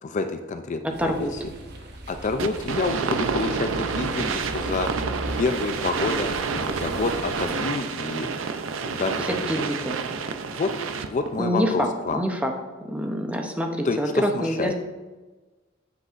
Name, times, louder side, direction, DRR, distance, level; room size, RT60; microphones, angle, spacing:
voice 1, 0.0-1.5 1.8-5.0 5.4-8.3 8.9-9.7 10.5-10.7 11.1-12.2 13.8-14.7, left 3 dB, 40° left, 7 dB, 0.4 m, -28 dB
sound 1, 0.9-7.6, right 1 dB, 55° right, 1.0 m, -38 dB
voice 2, 1.0-1.3 9.5-10.0 11.4-12.5 12.8-14.7, equal, 5° right, 3 dB, 0.7 m, -26 dB
sound 2, 2.4-11.3, right 5 dB, 75° right, 0.5 m, -29 dB
9.1 x 7.6 x 2.5 m, 1.2 s
head